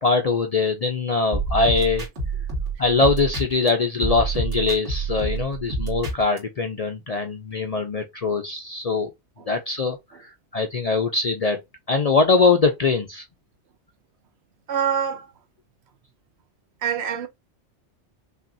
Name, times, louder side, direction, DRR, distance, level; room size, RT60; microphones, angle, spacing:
voice 1, 0.0-2.1 2.8-9.1 9.5-11.6 11.9-13.2, left 4 dB, 50° left, 0.4 m, -22 dB
sound 1, 1.3-3.7 4.0-6.4, right 3 dB, 90° right, 2.5 m, -27 dB
voice 2, 14.7-15.3 16.8-17.3, right 8 dB, 70° right, 0.9 m, -24 dB
5.6 x 2.4 x 2.6 m
omnidirectional pair, 1.2 m